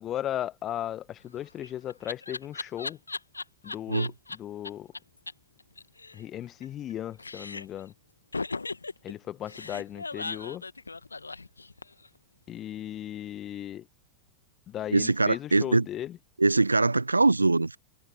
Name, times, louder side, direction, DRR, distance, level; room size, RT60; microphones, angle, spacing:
voice 1, 0.0-3.0 3.6-4.1 4.4-4.9 6.1-7.9 9.0-10.6 12.5-13.8 14.7-16.1, left 11 dB, 30° left, 1.2 m, -36 dB
Laughter, 1.3-4.4 4.6-4.7 4.9-5.0 5.3-5.4 5.6-6.9 7.2-7.8 8.3-12.1, left 3 dB, 80° left, 1.5 m, -37 dB
voice 2, 14.9-15.9 16.4-17.8, right 3 dB, 80° right, 0.9 m, -22 dB
figure-of-eight pair, 90°, 0 cm